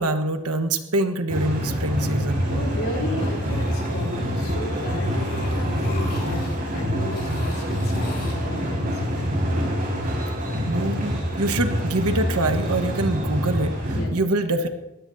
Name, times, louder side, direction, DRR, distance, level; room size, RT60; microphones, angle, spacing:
voice 1, 0.0-2.5 10.6-14.7, right 2 dB, 90° right, 7 dB, 1.3 m, -25 dB
sound 1, 1.3-14.0, equal, 40° right, 4.8 m, -26 dB
voice 2, 2.5-9.3 13.9-14.1, left 1 dB, 65° left, 0 dB, 4.0 m, -34 dB
sound 2, 3.2-4.4 4.7-6.7 7.1-8.3, left 2 dB, 45° left, 4.5 m, -41 dB
21.0 x 16.5 x 2.7 m, 0.96 s
head